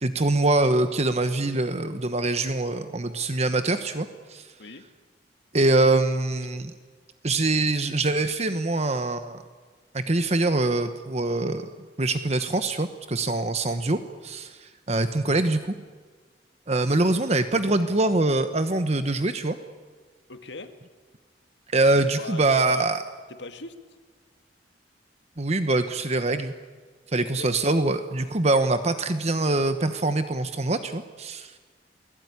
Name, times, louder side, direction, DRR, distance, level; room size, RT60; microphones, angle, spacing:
voice 1, 0.0-4.4 5.5-6.7 7.2-9.4 9.9-11.7 12.0-15.7 16.7-19.6 21.7-23.0 25.4-26.5 27.1-31.5, right 2 dB, 40° right, 9 dB, 1.1 m, -24 dB
voice 2, 20.3-20.7 21.8-22.9 23.3-23.7 27.2-27.5, left 2 dB, 85° left, 8 dB, 2.1 m, -40 dB
29.0 x 20.0 x 9.7 m, 1.4 s
head